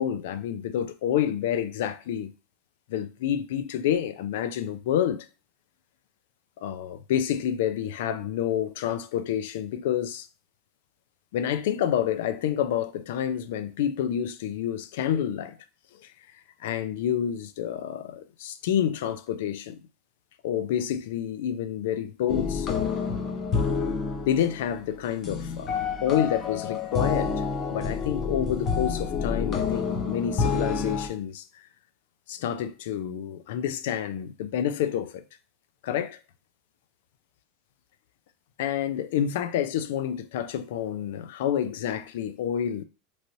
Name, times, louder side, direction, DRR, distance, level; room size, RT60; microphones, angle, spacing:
voice 1, 0.0-2.3 2.9-5.3 6.6-10.3 11.3-15.6 16.6-19.8 20.4-23.0 24.3-27.4 27.7-31.4 32.3-35.2 35.8-36.2 38.6-42.8, left 10 dB, 80° left, 0.3 m, -28 dB
sound 1, 22.3-31.1, left 5 dB, 30° left, 0.6 m, -28 dB
3.1 x 2.6 x 2.6 m
supercardioid pair, 160°, 0 cm